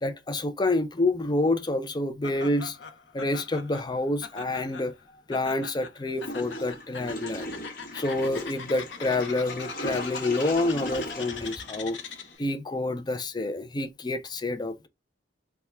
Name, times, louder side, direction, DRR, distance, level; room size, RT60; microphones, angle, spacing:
voice 1, 0.0-2.8 3.1-4.9 5.3-7.5 7.9-12.0 12.4-14.9, left 2 dB, 25° left, 0.5 m, -28 dB
Laughter, 2.2-12.5, left 6 dB, 75° left, 0.7 m, -42 dB
Water / Toilet flush, 6.2-12.4, left 1 dB, 55° left, 1.1 m, -38 dB
3.5 x 2.3 x 4.2 m
head